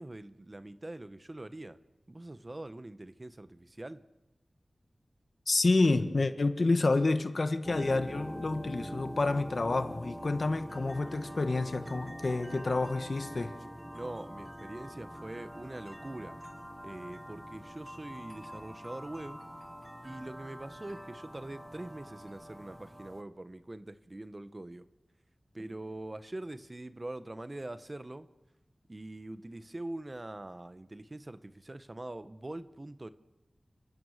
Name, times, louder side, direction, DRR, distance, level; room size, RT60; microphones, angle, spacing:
voice 1, 0.0-1.8 2.1-4.1 13.9-16.4 16.8-19.4 20.0-24.9 25.5-28.3 28.9-33.1, right 1 dB, 35° right, 1.1 m, -43 dB
voice 2, 5.5-13.5, left 3 dB, 65° left, 1.6 m, -29 dB
sound 1, 7.6-23.2, equal, 10° right, 1.7 m, -44 dB
29.5 x 16.5 x 6.6 m
wide cardioid pair, 55°, 0 cm